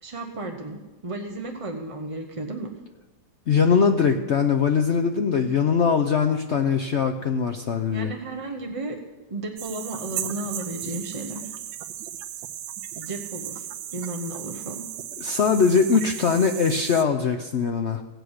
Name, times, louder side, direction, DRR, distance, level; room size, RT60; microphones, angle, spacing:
voice 1, 0.0-2.7 7.9-9.0 9.3-11.5 13.0-14.8, right 2 dB, 30° right, 3 dB, 0.6 m, -34 dB
voice 2, 3.5-8.1 15.2-18.0, left 6 dB, 75° left, 6 dB, 0.6 m, -21 dB
sound 1, 9.6-17.0, right 11 dB, 85° right, 1.4 m, -36 dB
17.0 x 8.0 x 6.4 m, 1.1 s
omnidirectional pair, 2.0 m